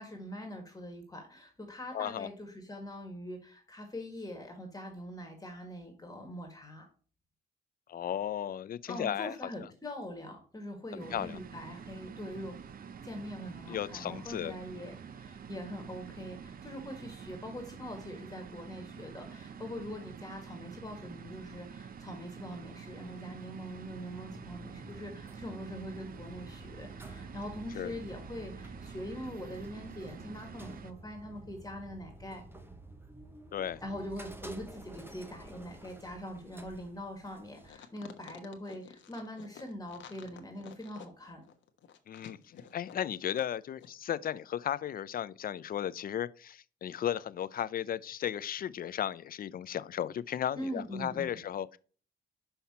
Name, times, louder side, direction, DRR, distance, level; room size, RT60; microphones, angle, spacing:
voice 1, 0.0-6.9 8.9-12.6 13.0-32.4 33.8-41.4 50.6-51.4, equal, 20° left, 1.8 m, -43 dB
voice 2, 1.9-2.3 7.9-9.3 10.9-11.4 13.7-14.6 27.7-27.9 33.5-33.8 42.1-42.4 42.7-51.8, left 10 dB, 45° left, 0.4 m, -35 dB
sound 1, 11.0-30.9, right 7 dB, 45° right, 0.6 m, -48 dB
sound 2, 24.3-37.7, right 1 dB, 10° right, 0.9 m, -50 dB
sound 3, 37.6-43.5 43.8-43.9, left 8 dB, 70° left, 1.0 m, -51 dB
5.7 x 5.7 x 4.2 m
cardioid pair, 90°, 20 cm